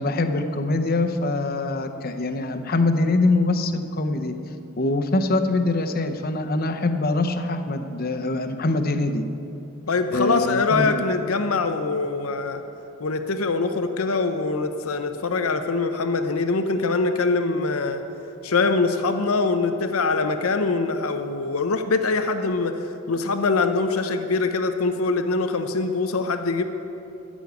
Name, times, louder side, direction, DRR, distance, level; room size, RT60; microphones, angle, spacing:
voice 1, 0.0-4.3 4.8-9.2 10.1-11.0, left 2 dB, 45° left, 7 dB, 0.7 m, -23 dB
voice 2, 9.9-12.6 13.0-18.0 18.4-22.7 23.1-26.6, left 3 dB, 90° left, 7 dB, 0.7 m, -23 dB
13.5 x 6.2 x 9.4 m, 2.8 s
head